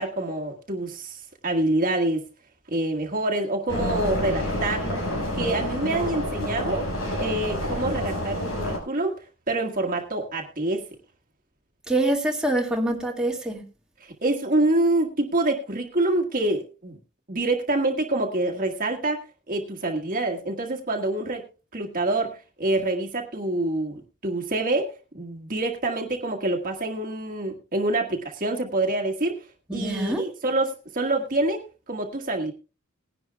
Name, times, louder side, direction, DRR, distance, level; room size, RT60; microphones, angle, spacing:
voice 1, 0.0-2.2 2.7-5.0 5.3-6.9 7.2-9.2 9.5-10.8 14.0-17.0 17.3-19.2 19.5-21.4 21.7-29.5 29.7-32.5, right 2 dB, 40° right, 1 dB, 1.6 m, -26 dB
sound 1, 3.7-8.8, left 1 dB, 75° left, 5.7 m, -28 dB
voice 2, 11.9-13.6 29.7-30.2, right 1 dB, 5° right, -1 dB, 1.9 m, -25 dB
20.0 x 11.0 x 2.3 m, 0.33 s
head